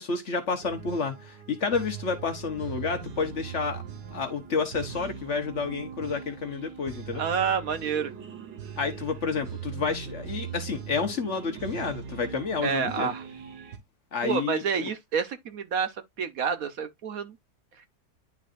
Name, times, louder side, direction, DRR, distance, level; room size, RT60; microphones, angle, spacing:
voice 1, 0.0-3.8 4.1-7.2 8.8-13.1 14.1-14.9, left 5 dB, 50° left, 1.2 m, -30 dB
sound 1, 0.6-13.8, right 7 dB, 90° right, 2.0 m, -40 dB
voice 2, 7.1-8.1 12.6-13.2 14.2-17.4 17.8-17.9, right 6 dB, 60° right, 1.2 m, -29 dB
11.0 x 4.0 x 2.5 m
omnidirectional pair, 1.8 m